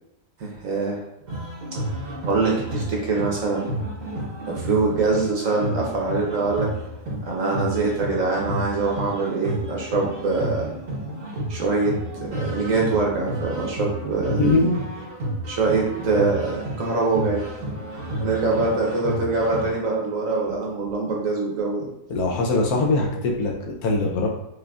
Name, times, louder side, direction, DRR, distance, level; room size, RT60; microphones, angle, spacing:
voice 1, 0.4-1.0 1.7-1.8 2.2-3.7 4.5-6.7 7.2-10.7 11.5-11.9 12.3-14.4 15.5-17.4 18.2-21.9, right 3 dB, 60° right, -2 dB, 1.1 m, -24 dB
sound 1, 1.3-19.7, right 1 dB, 90° right, 1.8 m, -31 dB
voice 2, 14.3-14.8 22.1-24.3, left 2 dB, 70° left, 0 dB, 1.1 m, -22 dB
4.9 x 2.6 x 2.3 m, 0.87 s
omnidirectional pair, 1.8 m